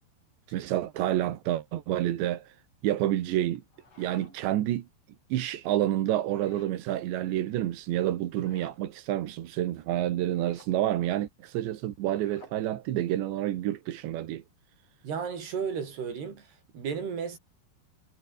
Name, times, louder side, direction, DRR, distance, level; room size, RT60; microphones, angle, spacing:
voice 1, 0.5-2.6 2.8-3.6 4.0-4.9 5.3-14.4, right 13 dB, 90° right, 3.9 m, -29 dB
sound 1, 3.5-4.6 6.2-6.8 8.3-8.8 10.3-10.7 12.0-12.6, left 3 dB, 35° left, 6.9 m, -55 dB
voice 2, 15.0-17.4, right 6 dB, 65° right, 6.8 m, -34 dB
omnidirectional pair, 4.9 m